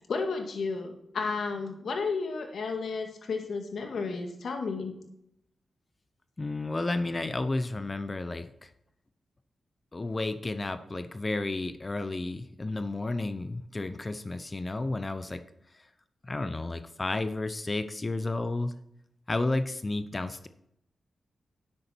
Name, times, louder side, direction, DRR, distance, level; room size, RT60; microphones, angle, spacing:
voice 1, 0.1-4.9, left 4 dB, 75° left, 4 dB, 2.0 m, -32 dB
voice 2, 6.4-8.7 9.9-15.4 15.7-15.8 16.2-18.7 19.3-20.5, left 2 dB, 35° left, 11 dB, 0.8 m, -32 dB
9.9 x 8.3 x 4.5 m, 0.75 s
supercardioid pair, 45°, 0 cm